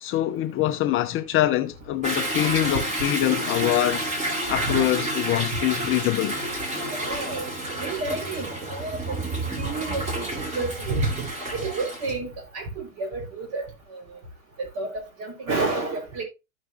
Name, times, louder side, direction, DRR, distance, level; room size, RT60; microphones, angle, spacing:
voice 1, 0.0-4.1 4.5-6.4, left 13 dB, 30° left, 0.7 m, -24 dB
Toilet flush / Drip / Trickle dribble, 2.0-12.1, right 1 dB, 15° right, 2.7 m, -30 dB
voice 2, 6.9-7.5 7.8-9.2 9.6-14.2 14.6-16.2, right 3 dB, 40° right, 5.0 m, -30 dB
15.0 x 5.4 x 2.6 m
hypercardioid pair, 120°, 41 cm